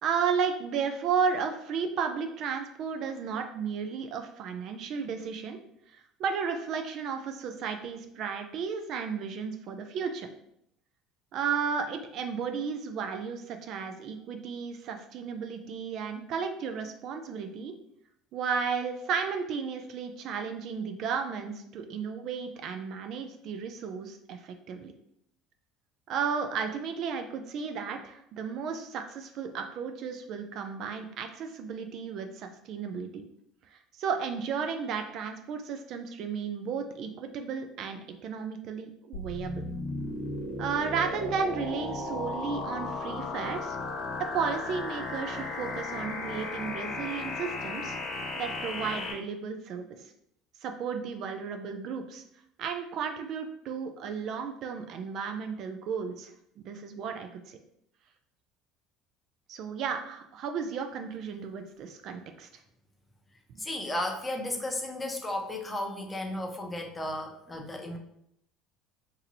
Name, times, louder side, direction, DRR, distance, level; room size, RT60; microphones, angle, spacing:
voice 1, 0.0-5.6 5.9-10.3 11.3-17.7 18.3-24.9 26.1-33.2 33.7-39.6 40.6-43.8 44.2-48.0 48.4-50.0 50.6-52.2 52.6-57.6 59.5-62.5 63.5-63.7, right 6 dB, 60° right, 6 dB, 0.4 m, -33 dB
sound 1, 39.1-49.1, left 2 dB, 50° left, 0.9 m, -35 dB
voice 2, 63.6-68.0, left 1 dB, 15° left, 2 dB, 0.7 m, -34 dB
2.7 x 2.5 x 4.1 m, 0.73 s
supercardioid pair, 85°, 0 cm